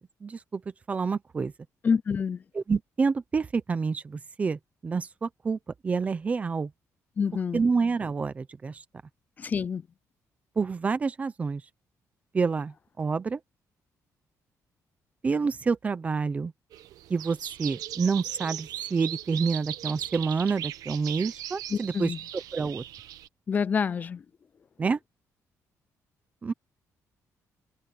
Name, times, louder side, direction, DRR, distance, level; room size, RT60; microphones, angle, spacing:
voice 1, 0.2-0.6 0.9-1.5 2.5-6.7 7.5-8.8 10.6-11.6 12.3-13.4 15.2-16.5 17.1-22.8 24.8-25.0 26.4-26.5, right 5 dB, 25° right, 0.8 m, -28 dB
voice 2, 1.8-2.4 7.2-7.6 9.4-9.8 21.7-22.2 23.5-24.2, left 6 dB, 30° left, 0.4 m, -27 dB
sound 1, 16.7-23.3, right 12 dB, 85° right, 1.0 m, -38 dB
cardioid pair, 175°, 6 cm